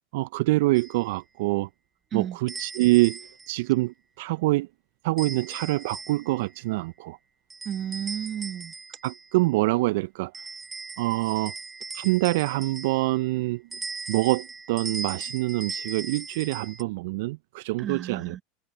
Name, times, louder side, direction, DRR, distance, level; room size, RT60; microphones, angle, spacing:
voice 1, 0.1-1.7 2.1-4.7 5.0-7.2 9.0-10.3 11.0-11.5 11.9-13.6 14.1-18.4, right 21 dB, 65° right, 0.4 m, -25 dB
sound 1, 0.7-1.0 2.5-3.5 5.2-6.4 7.5-9.3 10.3-13.2 13.7-16.8, right 4 dB, 20° right, 5.2 m, -39 dB
voice 2, 7.6-8.7 17.8-18.4, right 9 dB, 40° right, 1.6 m, -32 dB
hypercardioid pair, 85°, 0 cm